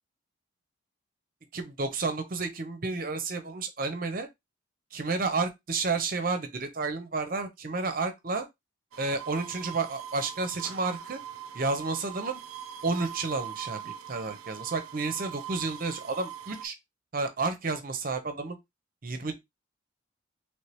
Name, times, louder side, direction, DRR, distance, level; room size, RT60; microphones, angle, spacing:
voice 1, 1.5-4.3 4.9-8.5 9.0-11.2 11.5-12.4 12.8-16.7 17.1-18.6 19.0-19.3, right 3 dB, 45° right, 0.7 m, -31 dB
sound 1, 8.9-16.7, right 10 dB, 85° right, 0.4 m, -42 dB
3.2 x 2.8 x 3.2 m
head